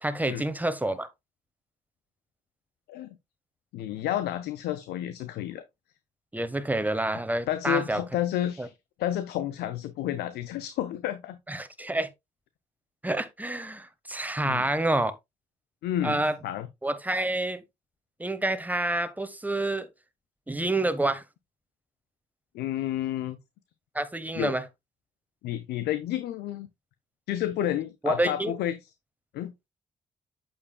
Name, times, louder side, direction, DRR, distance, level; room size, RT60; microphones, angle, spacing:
voice 1, 0.0-1.1 6.3-8.0 8.6-8.7 11.5-12.1 13.0-15.1 16.0-16.4 16.8-17.6 18.2-19.9 20.5-21.2 23.9-24.7 28.0-28.5, right 1 dB, 10° right, 1.2 m, -28 dB
voice 2, 3.7-5.6 7.5-8.7 9.0-11.4 14.4-14.7 15.8-16.7 22.5-23.4 24.4-24.5 25.4-26.7 27.3-28.8 29.3-29.5, left 12 dB, 75° left, 0.6 m, -30 dB
8.5 x 7.1 x 2.2 m
hypercardioid pair, 45°, 17 cm